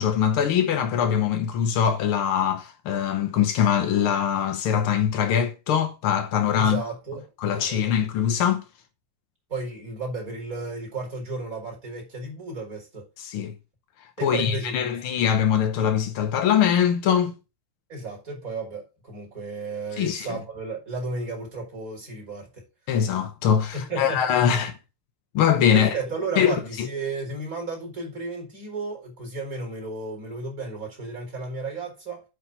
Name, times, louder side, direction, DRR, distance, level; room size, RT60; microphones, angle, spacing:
voice 1, 0.0-6.8 7.4-8.6 13.2-13.5 14.2-17.4 20.0-20.4 22.9-24.7 25.3-25.9 26.4-26.9, left 8 dB, 80° left, 1.2 m, -22 dB
voice 2, 6.6-7.2 7.5-7.8 9.5-13.1 14.2-15.0 17.9-22.6 23.7-24.3 25.7-32.2, right 3 dB, 25° right, 4.6 m, -33 dB
8.7 x 4.9 x 5.8 m
omnidirectional pair, 3.7 m